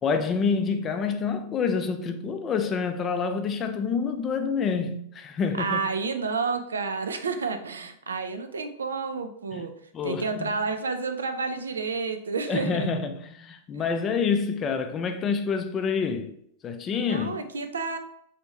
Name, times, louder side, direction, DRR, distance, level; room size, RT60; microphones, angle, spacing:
voice 1, 0.0-5.8 9.5-9.6 9.9-10.5 12.5-16.3 16.6-17.4, left 5 dB, 25° left, 0.3 m, -27 dB
voice 2, 5.6-9.7 10.0-12.9 17.1-18.0, right 4 dB, 70° right, 0.3 m, -30 dB
3.2 x 2.6 x 3.0 m
figure-of-eight pair, 90°, 0 cm